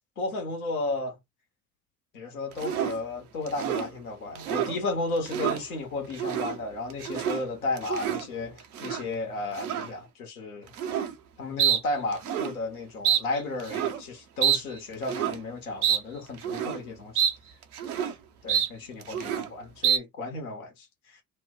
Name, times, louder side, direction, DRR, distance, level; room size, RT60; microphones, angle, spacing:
voice 1, 0.2-1.2 2.1-10.7 11.4-17.2 18.4-20.9, left 2 dB, 80° left, 1.1 m, -33 dB
sound 1, 2.6-3.0 3.5-3.9 4.3-4.8 5.2-5.6 6.1-6.6 6.9-7.4 7.8-8.3 8.7-9.0 9.6-9.9 10.7-11.1 11.6-11.8 12.1-12.5 13.0-13.2 13.6-14.0 14.4-14.6 15.0-15.4 15.8-16.0 16.4-16.8 17.1-17.3 17.6-18.1 18.5-18.7 19.0-19.5 19.8-20.0, right 9 dB, 80° right, 0.6 m, -27 dB
2.9 x 2.1 x 3.6 m
figure-of-eight pair, 55°, 44 cm